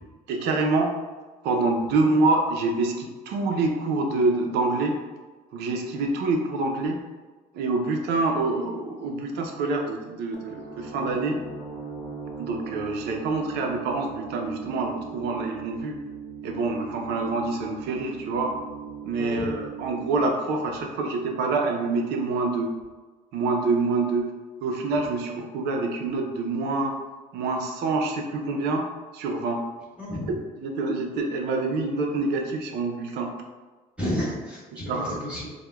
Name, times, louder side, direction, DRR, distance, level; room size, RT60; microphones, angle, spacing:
voice 1, 0.3-0.9 1.4-4.9 5.5-7.0 7.5-11.4 12.4-15.9 16.4-18.5 19.0-22.7 23.3-24.3 24.6-27.0 27.3-28.9 29.1-29.6 30.3-33.3 34.7-35.1, right 3 dB, 80° right, 3 dB, 0.6 m, -26 dB
sound 1, 10.3-21.8, right 6 dB, 45° left, 0.8 m, -40 dB
voice 2, 19.2-19.5 30.0-30.3 34.0-35.5, equal, 5° right, -7 dB, 1.3 m, -31 dB
4.8 x 2.2 x 2.3 m, 1.3 s
cardioid pair, 110°, 17 cm